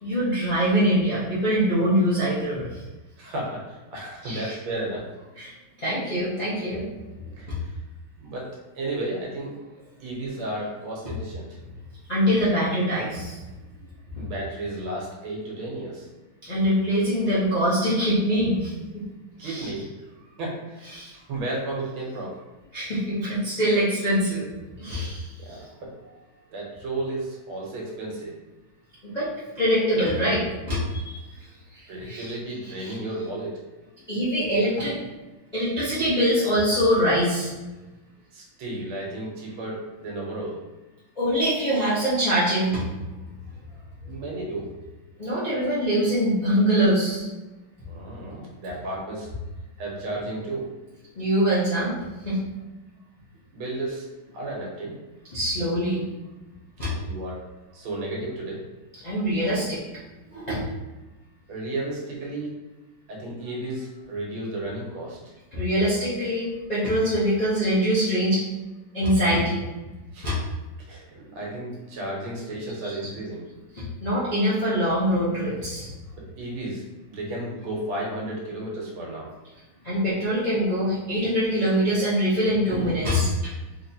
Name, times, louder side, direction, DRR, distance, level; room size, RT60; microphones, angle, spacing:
voice 1, 0.0-2.8 4.2-4.5 5.4-5.5 5.8-6.8 12.1-13.4 16.4-19.0 19.4-19.7 20.9-21.1 22.7-24.4 24.8-25.3 29.0-29.3 29.6-31.2 31.7-32.3 32.6-33.0 34.1-35.0 35.5-37.5 41.2-42.8 45.2-47.3 51.2-51.9 52.2-52.4 55.3-56.0 56.8-56.9 59.0-59.8 60.3-60.6 65.5-68.4 68.9-69.6 70.2-70.4 72.8-73.0 73.7-75.9 79.8-83.5, equal, 45° left, -11 dB, 0.5 m, -23 dB
voice 2, 3.2-5.3 7.2-7.8 8.2-8.5 8.8-9.6 10.0-11.6 14.2-16.1 19.4-19.9 20.2-22.4 25.4-26.1 26.5-28.3 31.9-33.5 38.3-40.6 44.0-44.7 47.9-49.3 49.8-50.7 53.5-54.1 54.3-55.0 56.8-57.4 57.7-58.6 61.5-62.5 63.1-65.2 70.1-70.4 70.9-73.5 76.1-76.8 77.1-79.3, right 1 dB, 75° right, -3 dB, 1.8 m, -33 dB
3.9 x 3.0 x 2.7 m, 1.1 s
omnidirectional pair, 2.3 m